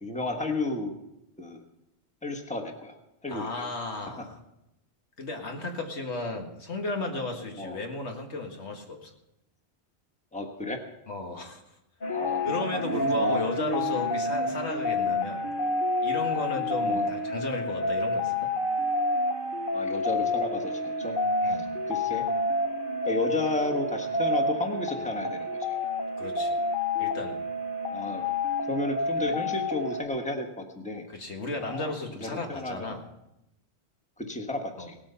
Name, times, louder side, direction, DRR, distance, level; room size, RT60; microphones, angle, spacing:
voice 1, 0.0-0.9 1.4-1.6 2.2-3.0 3.2-3.7 4.2-4.3 7.6-7.8 10.3-10.8 12.1-12.4 12.7-13.5 16.8-17.1 19.7-21.1 21.5-21.6 21.9-22.2 23.0-25.8 27.9-28.2 28.7-31.1 31.6-31.9 32.2-33.0 34.2-35.0, left 2 dB, 5° left, 3 dB, 1.3 m, -32 dB
voice 2, 3.3-4.4 5.2-9.1 11.1-11.8 12.4-15.5 16.0-18.5 21.4-21.7 26.2-26.6 27.0-27.4 31.1-33.1 34.8-34.9, left 2 dB, 75° left, 2 dB, 1.9 m, -34 dB
sound 1, 12.0-30.0, left 2 dB, 50° left, 1.3 m, -29 dB
17.5 x 8.8 x 5.6 m, 0.89 s
omnidirectional pair, 1.1 m